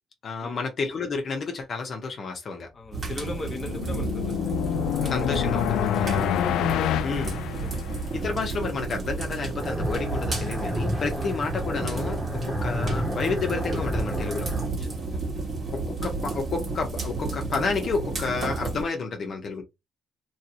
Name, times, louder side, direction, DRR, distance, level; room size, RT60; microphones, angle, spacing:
voice 1, 0.2-2.7 5.1-6.4 7.0-7.3 8.1-14.5 15.7-19.6, left 4 dB, 55° left, 1.0 m, -30 dB
voice 2, 2.7-4.8 5.9-6.0 6.4-7.8 11.2-11.3 14.8-15.2, left 2 dB, 30° left, 1.1 m, -40 dB
sound 1, 2.9-18.8, right 3 dB, 45° right, 1.7 m, -32 dB
sound 2, 3.2-8.2, left 11 dB, 85° left, 0.3 m, -27 dB
sound 3, 9.5-14.7, equal, 10° right, 1.5 m, -31 dB
3.2 x 2.6 x 2.9 m
cardioid pair, 90°, 0 cm